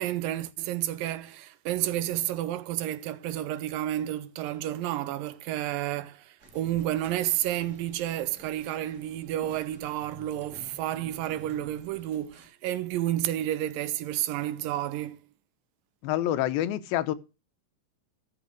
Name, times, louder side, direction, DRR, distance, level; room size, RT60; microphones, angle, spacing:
voice 1, 0.0-15.2, right 13 dB, 80° right, 2.3 m, -31 dB
sound 1, 6.4-12.5, right 1 dB, 25° right, 2.2 m, -52 dB
voice 2, 16.0-17.1, left 13 dB, 90° left, 2.6 m, -27 dB
14.0 x 5.2 x 6.4 m
omnidirectional pair, 4.1 m